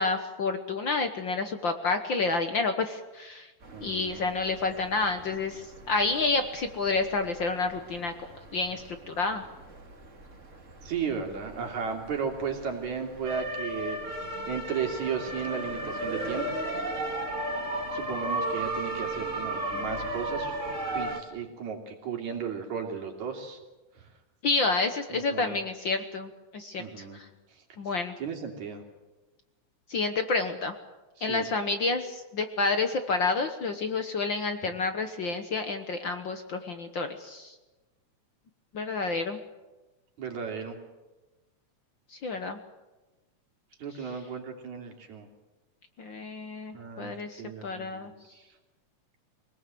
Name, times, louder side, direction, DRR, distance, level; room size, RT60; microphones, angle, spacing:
voice 1, 0.0-3.5 3.8-9.4 24.4-27.3 27.8-28.1 29.9-30.7 31.2-37.5 38.7-39.4 42.1-42.6 46.0-48.1, left 3 dB, 55° left, 7 dB, 1.3 m, -29 dB
sound 1, 3.6-21.2, right 1 dB, 25° right, 2.1 m, -36 dB
voice 2, 3.7-4.3 10.8-14.0 14.5-16.5 17.9-20.6 20.9-23.6 25.1-25.6 26.8-27.2 28.2-28.8 31.2-31.5 40.2-40.8 43.8-45.3 46.7-47.1 47.4-48.2, right 6 dB, 70° right, 2 dB, 4.4 m, -35 dB
25.0 x 19.0 x 7.7 m, 1.1 s
omnidirectional pair, 3.5 m